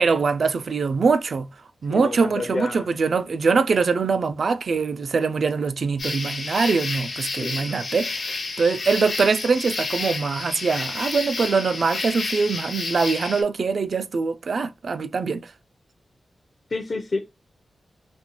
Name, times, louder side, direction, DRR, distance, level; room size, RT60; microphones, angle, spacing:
voice 1, 0.0-1.5 1.8-15.5, right 4 dB, 60° right, 0.3 m, -23 dB
voice 2, 1.9-2.9 7.4-7.7 16.7-17.2, left 3 dB, 45° left, 0.5 m, -29 dB
sound 1, 6.0-13.4, left 3 dB, 70° left, 1.1 m, -30 dB
4.1 x 2.1 x 2.9 m
wide cardioid pair, 105°, 0 cm